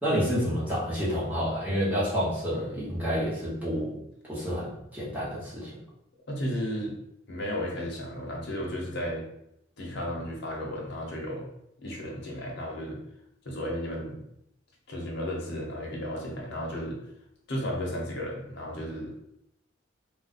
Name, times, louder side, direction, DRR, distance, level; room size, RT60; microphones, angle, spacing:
voice 1, 0.0-3.9 4.2-5.7, equal, 10° right, -9 dB, 1.3 m, -29 dB
voice 2, 2.5-2.8 6.3-6.9 7.3-9.2 9.8-11.5 11.8-13.0 13.4-14.2 14.9-17.0 17.5-19.2, equal, 60° left, -2 dB, 0.9 m, -34 dB
2.5 x 2.3 x 4.0 m, 0.78 s
head